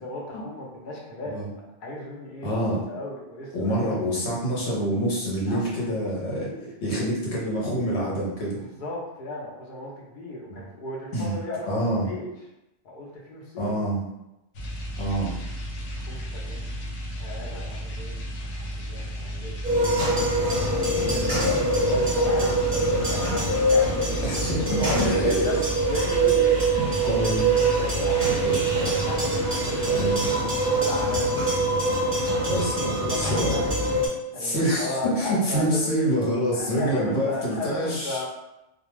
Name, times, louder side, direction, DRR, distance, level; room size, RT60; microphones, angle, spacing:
voice 1, 0.0-1.4 1.8-2.5 2.9-4.0 5.5-6.1 6.4-6.7 8.8-11.8 12.0-12.3 12.8-13.7 16.0-16.7 17.2-19.6 20.1-28.4 28.7-30.0 30.7-31.4 32.2-32.3 32.8-33.8 34.3-36.1 36.5-38.3, left 1 dB, 50° left, -3 dB, 0.7 m, -35 dB
voice 2, 2.4-2.8 3.5-6.5 6.8-8.6 10.5-10.6 11.1-11.4 11.7-12.1 13.6-14.0 15.0-15.3 19.3-19.4 22.9-23.0 24.2-25.1 26.8-27.5 28.4-28.6 29.9-30.2 32.5-33.6 34.3-38.3, equal, 65° left, -5 dB, 1.1 m, -26 dB
sound 1, 14.5-30.2, equal, 90° left, 0.9 m, -34 dB
sound 2, 19.6-34.1, right 2 dB, 30° right, 0.7 m, -24 dB
2.3 x 2.3 x 3.1 m, 0.92 s
omnidirectional pair, 1.2 m